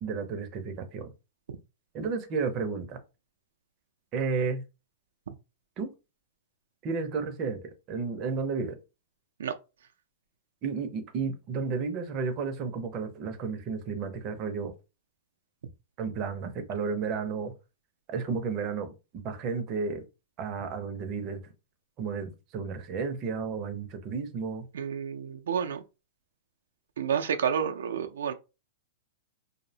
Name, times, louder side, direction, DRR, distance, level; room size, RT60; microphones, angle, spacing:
voice 1, 0.0-1.1 1.9-3.0 4.1-4.6 5.8-5.9 6.8-8.8 10.6-14.7 16.0-17.5 18.1-20.0 20.4-21.4 22.0-24.7, right 5 dB, 30° right, 0.5 m, -32 dB
voice 2, 24.7-25.8 27.0-28.3, right 7 dB, 90° right, 0.4 m, -30 dB
2.6 x 2.0 x 2.7 m
supercardioid pair, 155°, 0 cm